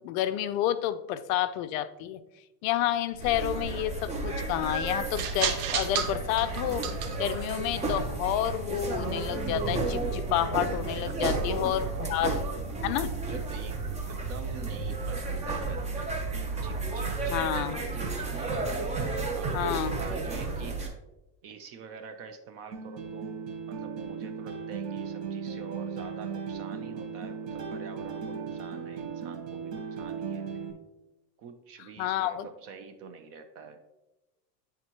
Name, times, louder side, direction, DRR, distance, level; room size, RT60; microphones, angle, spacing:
voice 1, 0.0-2.2 2.6-6.9 7.2-12.4 12.8-13.1 17.3-17.8 19.5-20.0 32.0-32.5, left 12 dB, 55° left, 13 dB, 0.5 m, -30 dB
sound 1, 3.1-10.5, right 6 dB, 70° right, 1.1 m, -36 dB
sound 2, 3.2-20.9, right 3 dB, 15° right, 0.8 m, -32 dB
voice 2, 11.1-13.8 14.1-18.6 19.4-20.8 21.4-23.4 23.7-30.5 31.4-33.8, right 5 dB, 35° right, 8 dB, 0.4 m, -46 dB
sound 3, 22.7-30.7, right 6 dB, 90° right, 1.8 m, -37 dB
10.0 x 3.6 x 2.9 m, 1.0 s
supercardioid pair, 125°, 48 cm